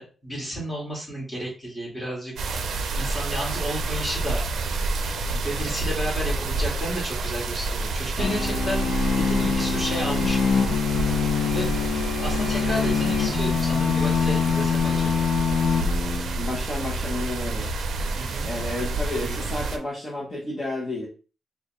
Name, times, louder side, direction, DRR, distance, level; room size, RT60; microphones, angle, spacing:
voice 1, 0.0-4.5 5.2-8.9 9.2-10.5 11.5-11.7 12.2-15.3 18.1-18.5, equal, 15° left, -5 dB, 1.8 m, -32 dB
sound 1, 2.4-19.8, right 3 dB, 75° right, 0.5 m, -28 dB
sound 2, 8.2-16.5, left 6 dB, 65° left, 0.4 m, -24 dB
voice 2, 16.4-17.7 18.4-21.1, left 2 dB, 30° left, -4 dB, 0.8 m, -31 dB
4.5 x 2.2 x 3.0 m, 0.36 s
wide cardioid pair, 170°, 0 cm